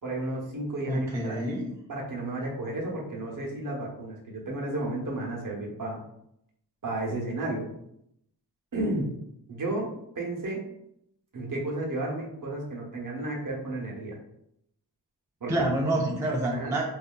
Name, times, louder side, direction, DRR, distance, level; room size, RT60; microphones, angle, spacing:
voice 1, 0.0-1.4 1.9-6.0 6.8-7.7 8.7-9.1 9.5-10.6 11.3-14.1 15.4-15.5 16.5-16.7, right 2 dB, 45° right, -2 dB, 0.8 m, -32 dB
voice 2, 0.9-1.7 15.5-16.8, right 1 dB, 5° right, -1 dB, 0.4 m, -27 dB
2.7 x 2.4 x 2.2 m, 0.77 s
cardioid pair, 60°, 44 cm